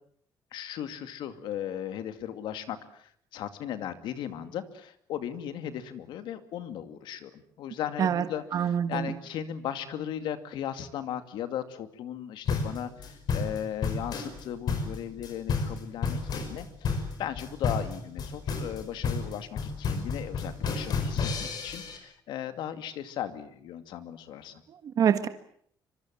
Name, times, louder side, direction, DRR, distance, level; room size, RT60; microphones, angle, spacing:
voice 1, 0.5-24.6, left 10 dB, 85° left, 9 dB, 2.4 m, -37 dB
voice 2, 8.5-9.1 24.7-25.3, right 8 dB, 50° right, 9 dB, 1.6 m, -26 dB
sound 1, 12.5-22.0, left 5 dB, 60° left, 5.8 m, -31 dB
25.5 x 24.5 x 7.7 m, 0.64 s
cardioid pair, 150°, 8 cm